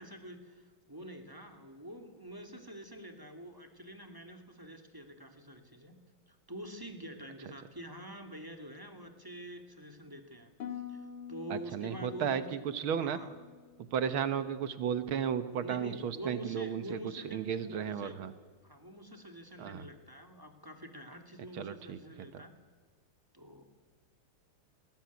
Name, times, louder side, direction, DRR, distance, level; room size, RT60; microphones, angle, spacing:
voice 1, 0.0-5.9 6.3-13.3 15.5-18.2 18.6-22.5 23.3-23.6, equal, 10° right, 5 dB, 2.3 m, -47 dB
Harp, 10.6-14.7 15.0-15.5 16.1-16.4, left 8 dB, 65° left, 2.4 m, -48 dB
voice 2, 11.5-13.2 13.9-18.3 19.6-19.8 21.5-22.0 22.3-22.4, right 8 dB, 75° right, 12 dB, 1.8 m, -34 dB
20.0 x 18.0 x 9.4 m, 1.5 s
omnidirectional pair, 2.4 m